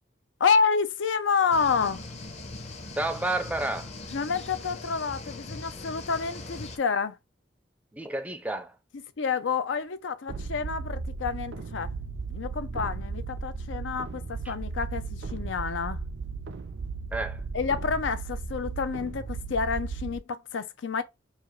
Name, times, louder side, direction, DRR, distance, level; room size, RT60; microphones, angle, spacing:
voice 1, 0.4-2.0 4.1-7.2 9.2-11.9 12.3-16.0 17.5-21.0, left 5 dB, 85° left, 0.5 m, -28 dB
sound 1, 1.5-6.8, left 2 dB, 35° left, 0.7 m, -40 dB
voice 2, 3.0-3.9 7.9-8.8 14.4-14.5 17.1-17.4, right 2 dB, 10° right, 0.4 m, -30 dB
sound 2, 10.3-20.2, right 4 dB, 70° right, 0.4 m, -35 dB
4.9 x 2.4 x 3.0 m
head